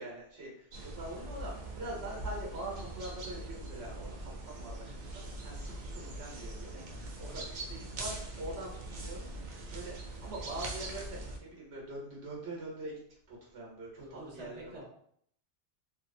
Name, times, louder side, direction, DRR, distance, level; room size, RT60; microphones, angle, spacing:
voice 1, 0.0-7.4 7.7-13.0 13.3-14.8, right 1 dB, 70° right, -3 dB, 1.1 m, -44 dB
sound 1, 0.7-11.4, right 2 dB, 55° right, 0.5 m, -42 dB
voice 2, 6.9-7.5 14.0-14.8, right 1 dB, 30° right, -4 dB, 0.9 m, -49 dB
2.7 x 2.6 x 2.5 m, 0.66 s
omnidirectional pair, 1.1 m